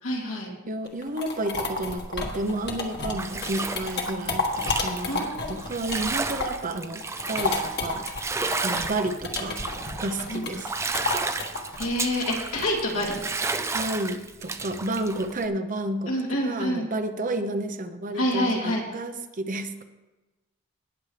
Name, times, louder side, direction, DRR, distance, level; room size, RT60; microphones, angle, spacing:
voice 1, 0.0-0.5 5.1-5.6 10.3-10.5 11.8-13.2 16.1-16.9 18.1-18.8, equal, 85° left, -3 dB, 2.9 m, -27 dB
voice 2, 0.7-8.1 8.6-9.6 10.0-10.7 13.7-19.8, right 1 dB, 40° right, 8 dB, 0.7 m, -31 dB
sound 1, 0.9-6.7 7.0-13.3, left 3 dB, 50° left, 1.5 m, -31 dB
Bathtub (filling or washing), 2.0-15.5, right 3 dB, 15° right, 0.4 m, -33 dB
18.5 x 7.2 x 3.3 m, 1.1 s
head